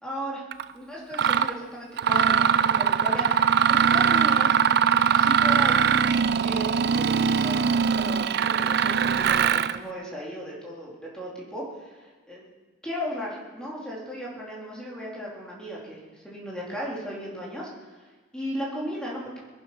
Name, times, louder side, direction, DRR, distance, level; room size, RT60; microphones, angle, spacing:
voice 1, 0.0-0.4 0.7-3.3 3.7-4.6 5.1-6.0 6.4-12.4 12.8-18.1 18.3-19.3, equal, 5° left, -5 dB, 3.9 m, -36 dB
Mechanisms, 0.5-0.6 1.1-1.5 2.0-9.8, right 7 dB, 55° right, 0.4 m, -21 dB
21.5 x 10.0 x 5.9 m, 1.3 s
head